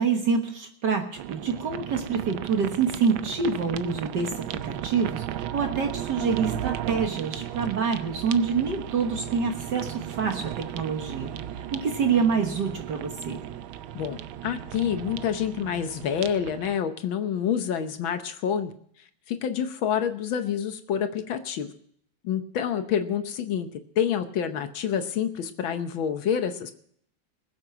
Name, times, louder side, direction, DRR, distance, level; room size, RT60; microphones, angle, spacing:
voice 1, 0.0-13.4, right 5 dB, 60° right, 4 dB, 1.9 m, -27 dB
sound 1, 1.2-16.8, right 11 dB, 85° right, 1.5 m, -35 dB
voice 2, 14.0-18.7 19.0-21.7 22.2-23.7 24.0-26.7, left 8 dB, 80° left, 9 dB, 1.7 m, -28 dB
20.5 x 8.0 x 6.0 m, 0.65 s
omnidirectional pair, 2.2 m